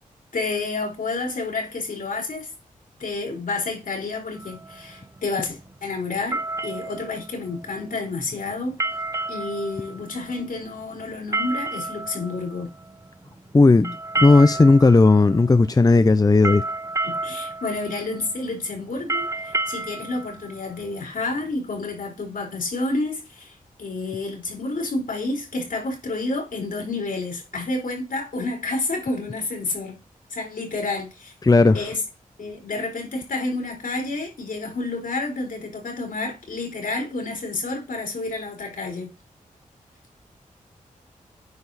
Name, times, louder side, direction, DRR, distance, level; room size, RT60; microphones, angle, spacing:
voice 1, 0.3-2.5 3.0-8.8 9.3-12.7 17.0-30.0 30.3-31.3 31.7-32.0 32.4-39.1, left 3 dB, 75° left, 4.3 m, -29 dB
sound 1, 4.4-21.5, right 2 dB, 20° right, 0.7 m, -32 dB
voice 2, 13.5-16.6 31.4-31.8, left 3 dB, 25° left, 0.6 m, -15 dB
9.6 x 4.8 x 4.2 m
cardioid pair, 45°, 15 cm